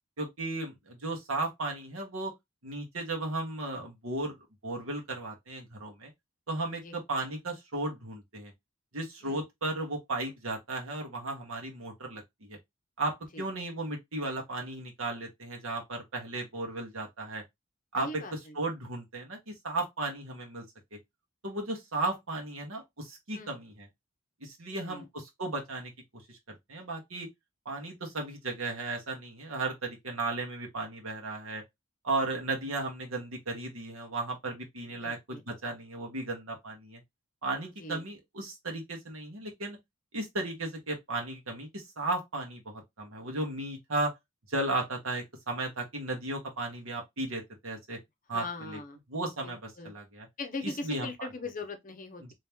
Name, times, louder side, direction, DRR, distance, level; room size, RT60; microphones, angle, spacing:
voice 1, 0.2-2.3 2.6-4.4 4.6-6.1 6.5-8.5 8.9-12.6 13.0-17.4 17.9-20.6 21.4-23.9 24.4-25.9 26.3-27.3 27.6-31.6 32.0-37.0 37.4-39.8 40.1-44.1 44.5-48.0 48.3-48.8 49.1-50.3 50.6-51.3, right 2 dB, 85° right, 1.4 m, -35 dB
voice 2, 17.9-18.6 23.3-23.5 24.7-25.1 34.9-35.4 37.8-38.0 48.3-49.0 49.4-49.9 50.4-52.3, left 2 dB, 40° left, 0.7 m, -40 dB
3.1 x 3.0 x 3.5 m
head